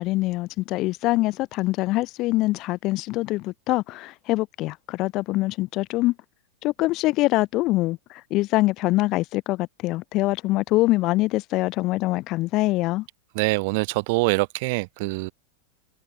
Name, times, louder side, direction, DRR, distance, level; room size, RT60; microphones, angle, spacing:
voice 1, 0.0-6.1 6.6-13.0, left 19 dB, 40° left, 1.5 m, -24 dB
voice 2, 13.4-15.3, right 27 dB, 50° right, 2.3 m, -24 dB
figure-of-eight pair, 90°, 0 cm